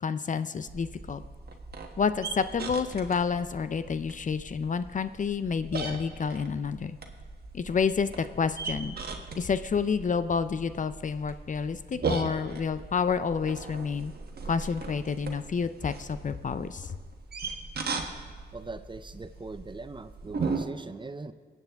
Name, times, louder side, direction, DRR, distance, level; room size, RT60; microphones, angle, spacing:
voice 1, 0.0-1.2 2.0-7.0 7.5-9.0 9.3-14.1 14.4-16.9, left 6 dB, 45° left, 12 dB, 0.5 m, -29 dB
sound 1, 0.7-20.6, right 4 dB, 60° right, 1.3 m, -38 dB
voice 2, 18.5-21.3, right 3 dB, 25° right, 11 dB, 0.5 m, -41 dB
21.5 x 8.3 x 3.5 m, 1.5 s
cardioid pair, 75°, 18 cm